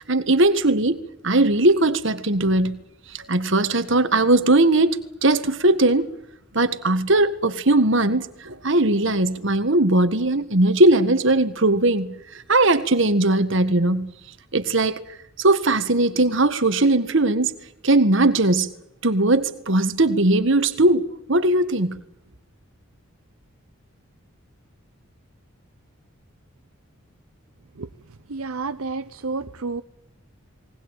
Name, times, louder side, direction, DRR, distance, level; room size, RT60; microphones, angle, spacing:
voice 1, 0.1-2.8 3.2-6.1 6.5-14.1 14.5-15.0 15.4-17.5 17.8-18.7 19.0-22.0, right 2 dB, 60° right, 1.7 m, -19 dB
voice 2, 28.3-29.8, right 4 dB, 85° right, 0.8 m, -30 dB
20.5 x 20.0 x 9.0 m
head